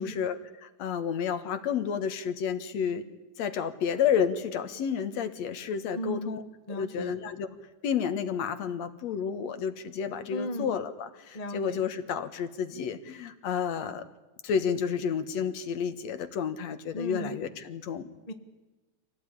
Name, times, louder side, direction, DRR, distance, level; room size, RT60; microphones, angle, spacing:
voice 1, 0.0-3.0 3.4-6.4 6.7-7.5 7.8-14.1 14.4-18.1, left 7 dB, 70° left, 10 dB, 2.6 m, -31 dB
voice 2, 5.9-6.4 6.7-7.1 10.3-10.7 11.3-11.8 16.9-17.4 18.3-18.4, equal, 25° left, 8 dB, 0.8 m, -35 dB
26.0 x 17.5 x 10.0 m, 1.2 s
omnidirectional pair, 3.3 m